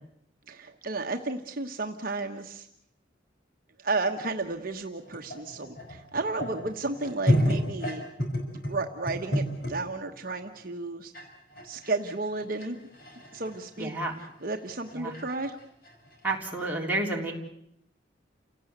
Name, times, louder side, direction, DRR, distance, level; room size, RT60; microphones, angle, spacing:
voice 1, 0.5-2.7 3.8-8.1 8.7-11.1 11.6-12.9 13.3-13.9 14.4-15.6, right 3 dB, 50° right, 4 dB, 1.2 m, -33 dB
sound 1, 5.1-9.8 10.3-10.5 11.1-11.3 11.5-16.4, equal, 55° left, 5.6 m, -30 dB
voice 2, 13.8-14.2 14.9-15.1 16.2-17.3, right 2 dB, 10° right, -2 dB, 3.7 m, -30 dB
29.0 x 17.5 x 8.1 m, 0.76 s
head